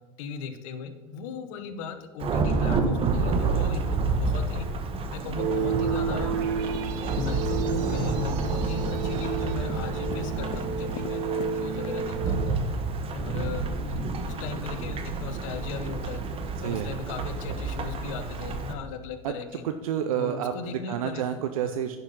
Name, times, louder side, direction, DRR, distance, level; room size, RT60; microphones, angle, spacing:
voice 1, 0.2-4.7 5.1-6.3 7.1-11.2 11.5-12.6 13.1-16.2 16.6-19.6 20.1-21.2 21.6-21.7, left 5 dB, 65° left, 9 dB, 1.1 m, -37 dB
Thunderstorm / Rain, 2.2-18.7, right 3 dB, 30° right, 1.2 m, -29 dB
sound 1, 5.3-12.5, right 5 dB, 60° right, 1.0 m, -31 dB
sound 2, 6.3-11.6 11.8-12.0, left 13 dB, 45° left, 0.4 m, -41 dB
voice 2, 16.6-17.0 19.2-19.3 19.6-22.0, right 9 dB, 75° right, 8 dB, 0.6 m, -29 dB
10.5 x 5.8 x 5.4 m, 1.4 s
hypercardioid pair, 100°, 18 cm